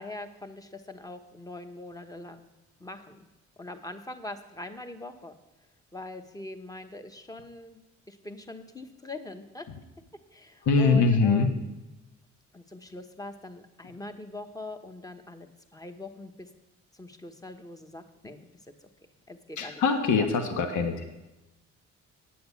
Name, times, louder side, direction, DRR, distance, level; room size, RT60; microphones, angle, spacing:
voice 1, 0.0-2.5 2.8-3.3 3.6-5.4 5.9-7.8 8.1-9.7 10.3-11.6 12.5-16.5 16.9-18.7 19.3-19.8 20.2-20.3, left 2 dB, 10° left, 7 dB, 1.1 m, -42 dB
voice 2, 10.6-11.5 19.6-21.0, left 4 dB, 75° left, 5 dB, 1.3 m, -23 dB
9.2 x 7.8 x 8.2 m, 1.0 s
cardioid pair, 90°, 30 cm